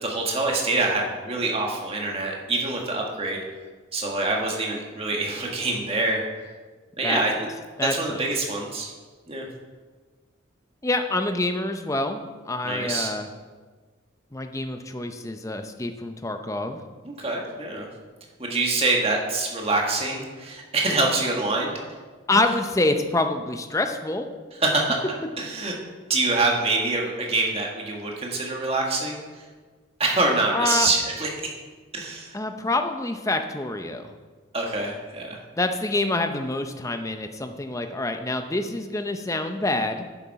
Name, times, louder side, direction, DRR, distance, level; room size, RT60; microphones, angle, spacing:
voice 1, 0.0-3.4 3.9-6.2 7.0-7.3 7.9-8.9 9.3-9.5 12.6-13.1 17.0-17.9 18.4-21.7 24.6-25.0 25.4-25.7 26.1-29.2 30.0-31.3 31.9-32.3 34.5-35.4, right 2 dB, 30° right, 0 dB, 1.6 m, -25 dB
voice 2, 7.8-8.2 10.8-13.3 14.3-16.8 22.3-24.3 30.5-30.9 32.3-34.1 35.6-40.1, left 2 dB, 15° left, 6 dB, 0.6 m, -26 dB
11.0 x 7.0 x 4.8 m, 1.4 s
head